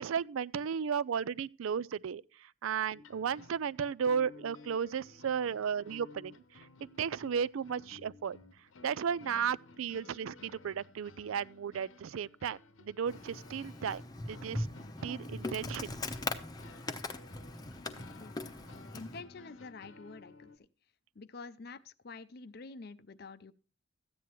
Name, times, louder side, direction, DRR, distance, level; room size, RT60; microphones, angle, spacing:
voice 1, 0.0-8.4 8.8-14.7 15.0-15.9, right 7 dB, 80° right, 0.4 m, -34 dB
sound 1, 2.9-20.6, left 3 dB, 75° left, 0.9 m, -55 dB
Insect, 13.1-19.2, left 2 dB, 20° left, 0.8 m, -40 dB
voice 2, 18.9-20.5 21.2-23.5, left 4 dB, 50° left, 0.5 m, -47 dB
14.0 x 9.2 x 3.0 m
head